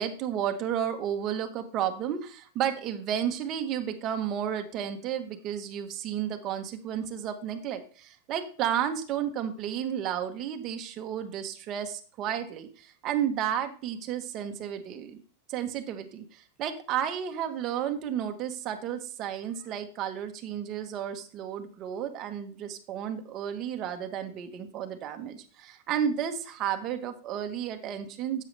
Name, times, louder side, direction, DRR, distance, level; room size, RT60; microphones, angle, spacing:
voice 1, 0.0-15.2 15.5-28.4, right 9 dB, 35° right, 6 dB, 1.1 m, -32 dB
10.5 x 7.6 x 3.3 m, 0.39 s
supercardioid pair, 150°, 0 cm